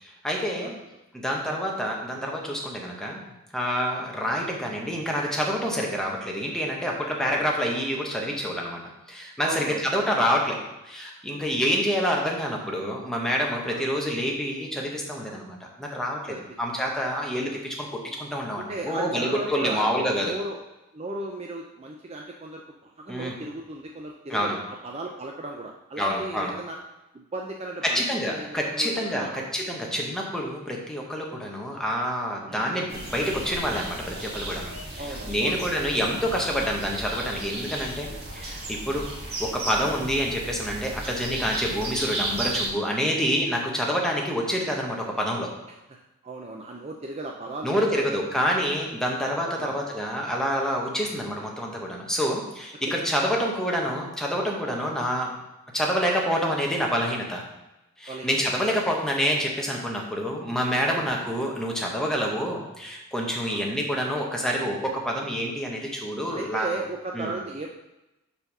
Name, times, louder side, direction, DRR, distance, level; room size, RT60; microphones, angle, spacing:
voice 1, 0.2-0.7 1.1-3.2 3.5-20.3 23.1-23.4 24.3-24.6 26.0-26.5 27.8-38.1 38.3-39.1 39.4-45.5 47.6-55.4 55.7-57.4 58.0-66.7 67.1-67.3, equal, 5° left, -1 dB, 1.0 m, -27 dB
voice 2, 7.2-7.5 9.4-9.8 13.7-13.9 16.3-16.4 17.4-17.6 18.5-19.9 20.2-20.6 20.9-26.8 27.1-29.4 32.5-32.7 35.0-35.5 38.9-39.0 46.2-48.5 49.6-49.8 52.9-53.0 53.3-53.5 54.8-54.9 58.1-58.3 60.9-61.3 63.5-63.6 66.3-67.7, right 2 dB, 30° right, 1 dB, 0.4 m, -36 dB
sound 1, 32.9-42.7, right 2 dB, 45° right, 1.8 m, -35 dB
5.1 x 4.5 x 5.9 m, 0.95 s
head